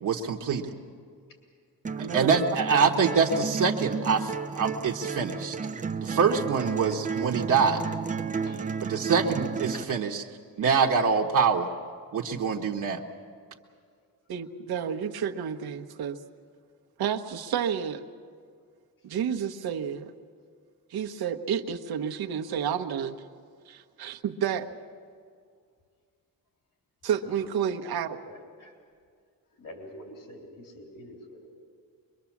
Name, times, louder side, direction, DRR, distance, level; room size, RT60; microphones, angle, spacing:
voice 1, 0.0-0.7 2.1-5.6 6.0-7.8 8.8-10.2 10.6-11.7 12.1-13.0, right 5 dB, 60° right, 0 dB, 1.2 m, -25 dB
sound 1, 1.8-9.8, right 5 dB, 20° right, 0.6 m, -32 dB
voice 2, 2.0-2.3 14.3-16.2 17.0-18.0 19.0-20.1 20.9-23.2 23.7-24.7 27.0-28.2, right 8 dB, 85° right, 5 dB, 1.2 m, -30 dB
voice 3, 27.0-27.5 28.2-28.7 29.6-31.5, left 1 dB, 65° left, 1 dB, 3.8 m, -46 dB
24.0 x 23.0 x 7.3 m, 2.1 s
wide cardioid pair, 165°, 36 cm